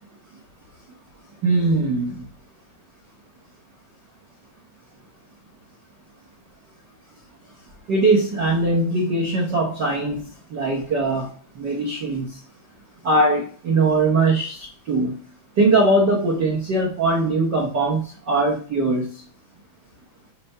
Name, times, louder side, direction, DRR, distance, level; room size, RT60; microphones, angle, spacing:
voice 1, 1.4-2.2 7.9-12.3 13.0-15.1 15.6-18.0 18.3-19.1, right 2 dB, 55° right, -3 dB, 1.2 m, -21 dB
7.5 x 2.8 x 5.5 m, 0.40 s
omnidirectional pair, 3.5 m